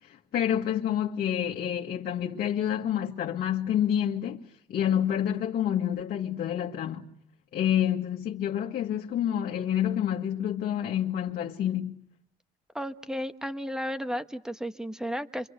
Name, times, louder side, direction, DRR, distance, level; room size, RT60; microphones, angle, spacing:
voice 1, 0.0-7.1 7.5-12.0, left 10 dB, 60° left, 1.8 m, -28 dB
voice 2, 12.7-15.5, equal, 5° right, 1.4 m, -33 dB
26.0 x 25.5 x 6.8 m
cardioid pair, 110°, 17 cm